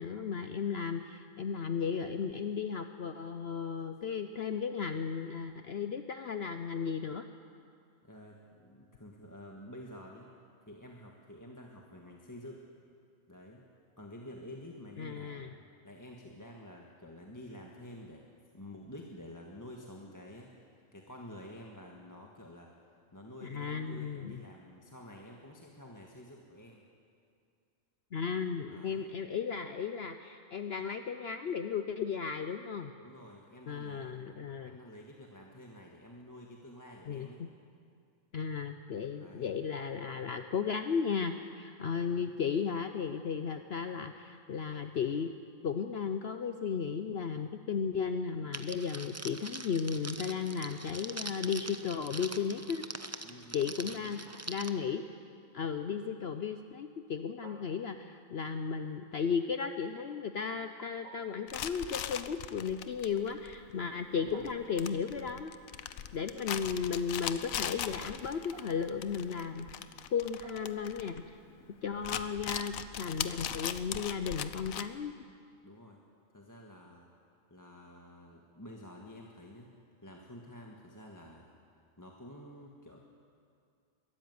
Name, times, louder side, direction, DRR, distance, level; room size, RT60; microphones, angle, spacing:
voice 1, 0.0-7.3 15.0-15.5 23.4-24.4 28.1-32.9 33.7-34.7 37.1-37.5 38.3-45.3 45.6-52.8 53.5-55.1 55.5-65.5 66.1-69.7 70.1-71.4 71.8-75.1, left 6 dB, 55° left, 8 dB, 0.9 m, -35 dB
voice 2, 8.0-10.3 10.7-12.6 13.3-13.6 14.0-15.5 15.8-18.2 18.5-26.8 28.7-29.1 33.0-37.4 39.2-39.5 42.1-42.3 53.2-54.2 64.2-64.4 71.9-72.3 75.6-76.0 76.3-77.1 77.5-79.7 80.0-81.5 82.0-83.0, left 1 dB, 15° left, -1 dB, 1.5 m, -50 dB
Crackle, 48.5-54.7, right 2 dB, 15° right, 0.5 m, -43 dB
sound 1, 54.2-54.9 57.4-58.3 61.0-61.6 64.3-65.0 66.6-67.1 68.5-69.1 70.4-71.1, right 4 dB, 75° right, 1.9 m, -55 dB
sound 2, 61.5-71.6 71.9-74.9, left 10 dB, 80° left, 1.2 m, -40 dB
22.5 x 13.5 x 9.4 m, 2.4 s
omnidirectional pair, 1.4 m